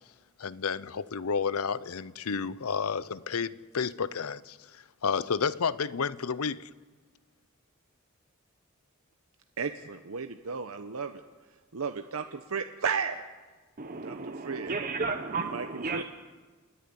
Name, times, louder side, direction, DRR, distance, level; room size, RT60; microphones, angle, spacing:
voice 1, 0.4-6.7, left 5 dB, 85° left, 18 dB, 0.7 m, -31 dB
voice 2, 9.6-11.2 11.7-13.2 14.0-14.7 15.4-16.0, right 5 dB, 80° right, 7 dB, 0.8 m, -34 dB
voice 3, 13.8-16.0, right 4 dB, 40° right, 5 dB, 1.0 m, -33 dB
28.5 x 10.5 x 9.7 m, 1.4 s
head